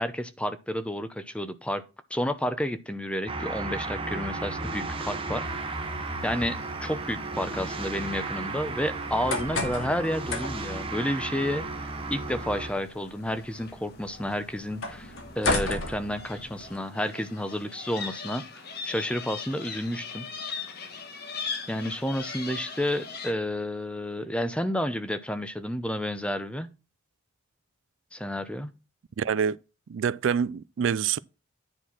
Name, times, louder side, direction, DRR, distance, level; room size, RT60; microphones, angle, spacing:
voice 1, 0.0-1.8 2.1-5.4 6.2-11.7 12.1-18.4 18.8-20.3 21.7-26.7 28.1-28.7, equal, 5° left, 0.7 m, -30 dB
sound 1, 3.3-12.7, right 3 dB, 25° right, 1.2 m, -34 dB
sound 2, 5.4-23.3, left 5 dB, 50° left, 1.5 m, -42 dB
sound 3, 9.0-16.8, left 2 dB, 75° left, 2.3 m, -35 dB
voice 2, 29.2-29.6 29.9-31.2, right 7 dB, 70° right, 0.4 m, -26 dB
9.9 x 4.3 x 6.0 m
head